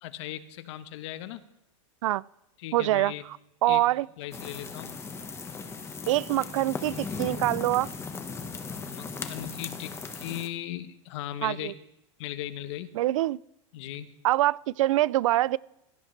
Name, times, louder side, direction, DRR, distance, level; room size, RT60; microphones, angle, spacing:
voice 1, 0.0-1.4 2.6-3.2 3.7-3.8 4.2-5.0 8.8-11.7 12.2-12.9 13.7-14.1, left 12 dB, 60° left, 11 dB, 1.1 m, -38 dB
voice 2, 2.7-3.1 3.6-4.1 6.1-7.9 11.4-11.7 12.9-13.4 14.2-15.6, right 16 dB, 70° right, 23 dB, 0.4 m, -24 dB
sound 1, 4.3-10.5, left 5 dB, 15° left, 1.3 m, -37 dB
16.5 x 14.5 x 3.3 m, 0.87 s
supercardioid pair, 130°, 17 cm